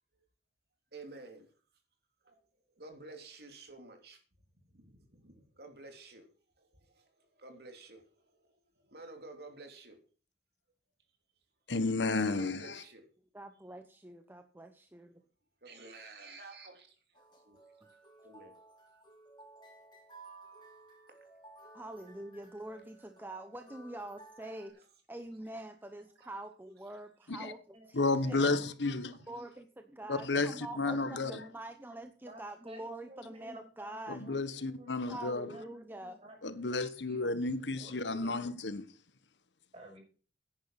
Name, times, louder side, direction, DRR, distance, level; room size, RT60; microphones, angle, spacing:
voice 1, 0.9-1.5 2.3-2.4 2.8-4.2 4.7-6.2 7.4-8.0 8.9-10.0 12.0-13.0 15.6-16.9 17.5-17.6 18.2-18.5, right 2 dB, 60° right, 3.1 m, -50 dB
voice 2, 11.7-12.8 27.3-27.5 27.9-29.1 30.1-31.4 34.1-35.5 36.4-38.8, left 3 dB, 90° left, 1.2 m, -32 dB
voice 3, 13.3-15.2 17.8-17.9 21.7-27.6 28.2-28.5 29.3-34.2 35.1-36.2, right 1 dB, 10° right, 0.9 m, -45 dB
sound 1, 17.1-24.7, right 2 dB, 25° left, 4.3 m, -56 dB
voice 4, 27.4-28.7 30.3-31.0 32.3-36.4 36.6-37.3 37.7-38.3 39.7-40.0, equal, 35° right, 6.2 m, -53 dB
10.5 x 10.5 x 5.8 m
head